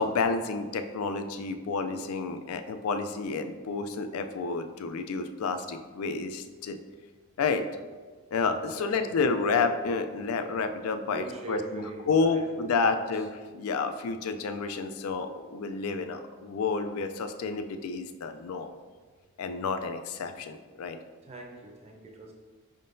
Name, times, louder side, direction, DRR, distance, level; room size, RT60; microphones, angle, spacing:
voice 1, 0.0-6.8 7.4-7.6 8.3-18.8 19.4-21.0, left 4 dB, 80° left, 8 dB, 0.4 m, -30 dB
voice 2, 8.7-9.2 10.4-10.7 11.1-13.3 21.2-22.3, right 2 dB, 30° right, 0 dB, 0.6 m, -43 dB
5.4 x 3.7 x 2.6 m, 1.4 s
head